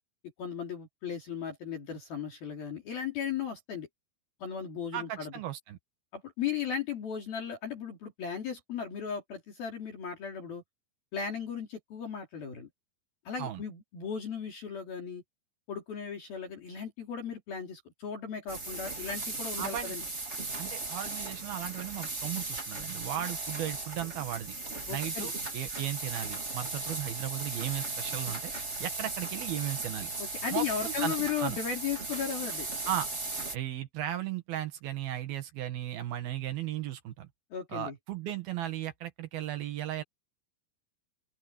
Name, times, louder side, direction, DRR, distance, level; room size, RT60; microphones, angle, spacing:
voice 1, 0.4-3.9 4.4-5.3 6.1-10.6 11.1-12.7 13.2-15.2 15.7-20.0 24.9-25.3 30.2-32.7 37.5-38.0, left 7 dB, 50° left, 4.9 m, -36 dB
voice 2, 4.9-5.8 13.4-13.6 19.6-20.0 20.6-24.6 24.9-28.5 28.8-30.1 30.5-31.2 31.4-31.6 32.9-33.1 33.5-37.3 37.7-40.0, right 12 dB, 65° right, 2.7 m, -36 dB
sound 1, 18.5-33.6, right 3 dB, 20° right, 2.1 m, -37 dB
open air
omnidirectional pair, 5.7 m